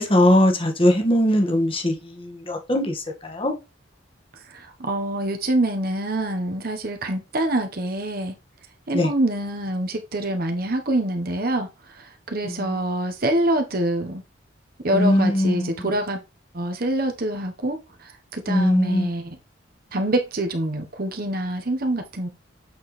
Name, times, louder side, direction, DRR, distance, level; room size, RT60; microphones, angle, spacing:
voice 1, 0.0-3.5 8.9-9.1 12.4-12.7 14.9-15.7 18.5-19.1, left 1 dB, 30° left, 1.7 m, -20 dB
voice 2, 4.5-8.4 8.9-11.7 12.0-14.2 14.8-16.2 16.5-19.4 19.9-22.3, right 1 dB, 50° right, 1.1 m, -25 dB
7.9 x 4.6 x 3.2 m
head